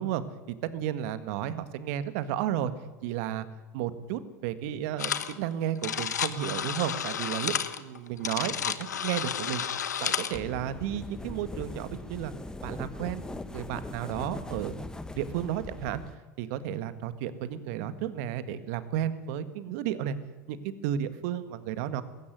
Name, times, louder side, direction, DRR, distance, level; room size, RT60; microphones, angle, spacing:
voice 1, 0.0-2.7 3.0-3.5 3.7-9.6 10.0-12.3 12.6-14.7 15.2-16.0 16.4-20.2 20.5-22.0, right 11 dB, 65° right, 12 dB, 1.8 m, -33 dB
sound 1, 5.0-5.3 5.6-10.4, left 8 dB, 85° left, 1.2 m, -31 dB
sound 2, 10.3-16.2, left 2 dB, 10° left, 1.3 m, -40 dB
20.5 x 16.5 x 9.5 m, 1.2 s
hypercardioid pair, 80°, 9 cm